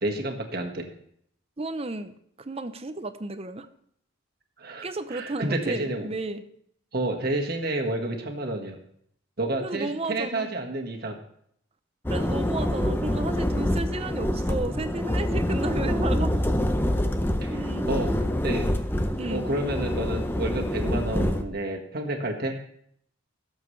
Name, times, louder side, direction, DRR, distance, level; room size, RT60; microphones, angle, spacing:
voice 1, 0.0-0.9 4.6-6.1 6.9-8.8 9.4-11.2 17.4-18.7 19.3-22.6, right 1 dB, 45° right, 2 dB, 1.6 m, -30 dB
voice 2, 1.6-3.7 4.8-6.4 9.6-10.5 12.1-16.4 17.5-18.3 19.2-19.4, right 2 dB, 30° right, 11 dB, 0.6 m, -33 dB
sound 1, 12.1-21.4, left 1 dB, 10° left, 0.6 m, -26 dB
17.5 x 7.3 x 3.2 m, 0.68 s
head